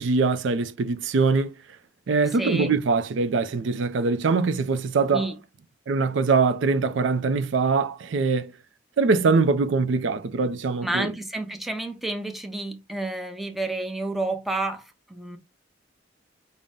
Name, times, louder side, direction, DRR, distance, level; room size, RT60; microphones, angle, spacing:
voice 1, 0.0-1.5 2.1-5.3 5.9-8.5 9.0-11.1, right 4 dB, 70° right, 0.4 m, -23 dB
voice 2, 2.4-2.7 5.1-5.3 10.8-14.8 15.1-15.4, right 2 dB, ahead, 0.6 m, -30 dB
5.3 x 2.1 x 3.5 m
head